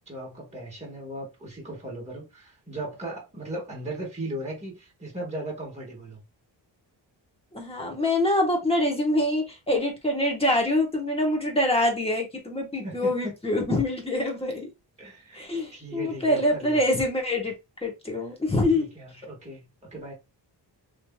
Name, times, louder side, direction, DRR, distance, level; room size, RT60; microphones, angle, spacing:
voice 1, 0.1-6.2 12.8-13.3 15.0-15.4 15.7-16.8 18.7-20.1, right 1 dB, 15° right, 1.4 m, -37 dB
voice 2, 7.5-14.7 15.3-17.5 17.8-18.9, left 1 dB, 15° left, 1.0 m, -25 dB
3.1 x 2.7 x 2.2 m
wide cardioid pair, 125°, 45 cm